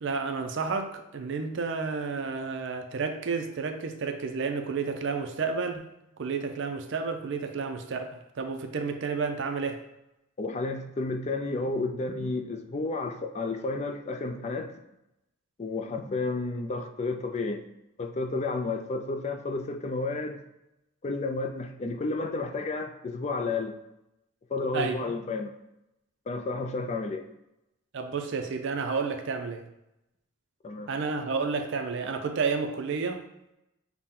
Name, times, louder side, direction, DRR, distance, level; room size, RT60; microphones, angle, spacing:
voice 1, 0.0-5.8 6.2-8.1 8.4-9.8 24.7-25.0 27.9-29.7 30.9-33.2, right 4 dB, 60° right, 6 dB, 0.4 m, -31 dB
voice 2, 10.4-14.7 15.6-17.6 18.0-20.4 21.0-23.7 24.5-25.5 26.3-27.2 30.6-30.9, left 3 dB, 30° left, 5 dB, 0.3 m, -31 dB
5.7 x 2.1 x 3.6 m, 0.89 s
head